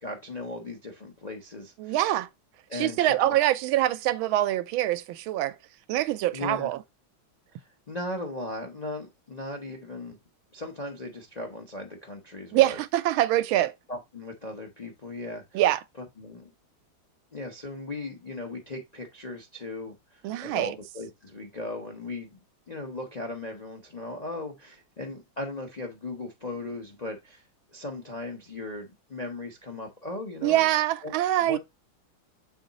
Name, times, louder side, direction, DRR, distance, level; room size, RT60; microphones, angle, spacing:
voice 1, 0.0-2.0 2.7-3.4 6.3-6.7 7.5-10.2 10.5-12.8 13.9-15.6 16.2-16.5 17.3-22.4 22.7-30.7 31.0-31.1 31.4-31.6, left 2 dB, 80° left, 0.3 m, -37 dB
voice 2, 1.8-2.3 2.7-5.5 5.9-6.8 12.5-13.7 15.5-15.8 20.2-20.8 30.4-31.6, right 14 dB, 85° right, 1.4 m, -24 dB
6.9 x 3.9 x 3.9 m
omnidirectional pair, 2.2 m